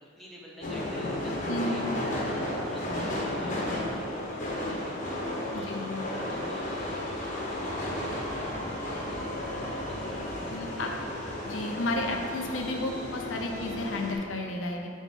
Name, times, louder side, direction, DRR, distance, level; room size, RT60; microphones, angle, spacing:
voice 1, 0.2-1.8 2.1-4.8 5.5-11.0, equal, ahead, -5 dB, 0.9 m, -48 dB
sound 1, 0.6-14.1, left 1 dB, 40° left, 1.0 m, -33 dB
voice 2, 1.5-1.9 5.5-6.0 10.5-10.9 11.5-14.9, left 1 dB, 80° left, 1 dB, 0.6 m, -32 dB
7.0 x 4.3 x 3.6 m, 2.6 s
head